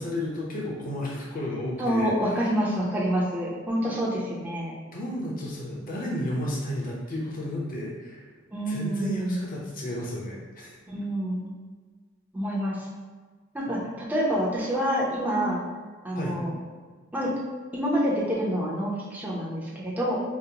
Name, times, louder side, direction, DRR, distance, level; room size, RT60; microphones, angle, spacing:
voice 1, 0.0-2.5 4.9-8.3 8.7-10.8 13.7-13.8 16.1-16.4, left 1 dB, 40° left, -4 dB, 0.7 m, -32 dB
voice 2, 1.8-4.7 8.5-9.4 10.9-11.5 12.3-12.9 13.5-15.6 16.0-16.5 17.1-17.3 17.7-20.2, equal, 10° right, -6 dB, 0.7 m, -27 dB
5.1 x 2.1 x 2.8 m, 1.4 s
head